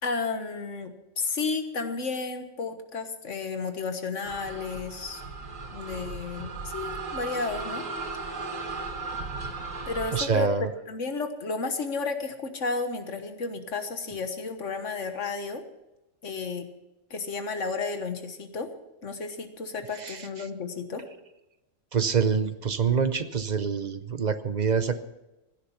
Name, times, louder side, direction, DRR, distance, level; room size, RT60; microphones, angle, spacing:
voice 1, 0.0-5.2 5.7-7.8 9.8-10.5 10.9-15.6 16.2-16.7 17.1-18.7 19.0-21.0, left 4 dB, 70° left, 7 dB, 1.7 m, -32 dB
sound 1, 4.2-10.2, right 3 dB, 85° right, 2.0 m, -36 dB
voice 2, 10.1-10.7 20.0-20.2 21.9-25.0, right 6 dB, 40° right, 11 dB, 0.7 m, -26 dB
16.5 x 11.5 x 5.7 m, 0.96 s
omnidirectional pair, 1.3 m